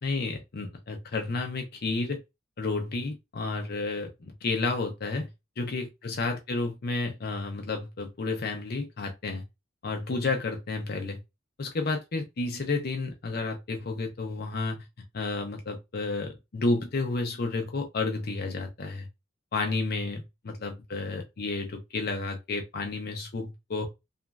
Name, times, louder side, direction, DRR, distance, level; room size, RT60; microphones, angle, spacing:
voice 1, 0.0-2.2 2.6-5.3 5.6-9.4 9.8-11.2 11.6-14.8 15.1-19.1 19.5-23.9, left 3 dB, 50° left, 0.6 m, -31 dB
3.0 x 2.5 x 2.2 m
head